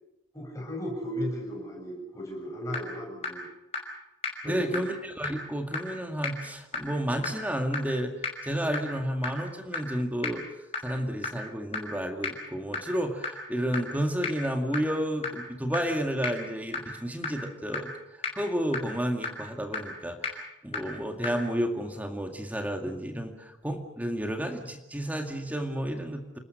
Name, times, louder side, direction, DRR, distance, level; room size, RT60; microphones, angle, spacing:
voice 1, 0.3-3.4 4.4-4.9, equal, 15° left, -1 dB, 7.8 m, -35 dB
sound 1, 2.3-2.4 2.7-2.8 3.2-3.3 3.7-3.8 4.2-4.3 4.7-4.8 5.2-5.3 5.7-5.8 6.2-6.3 6.7-6.8 7.2-7.3 7.7-7.8 8.2-8.3 8.7-8.8 9.2-9.3 9.7-9.8 10.2-10.3 10.7-10.8 11.2-11.3 11.7-11.8 12.2-12.3 12.7-12.8 13.2-13.3 13.7-13.8 14.2-14.3 14.7-14.8 15.2-15.3 15.7-15.8 16.2-16.3 16.7-16.8 17.2-17.3 17.7-17.8 18.2-18.3 18.7-18.8 19.2-19.3 19.7-19.8 20.2-20.3 20.7-20.8 21.2-21.3, left 4 dB, 30° left, 5.6 m, -30 dB
voice 2, 4.5-8.1 8.4-10.4 10.8-26.4, equal, 10° right, 3 dB, 2.1 m, -31 dB
29.0 x 20.0 x 6.5 m, 0.96 s
head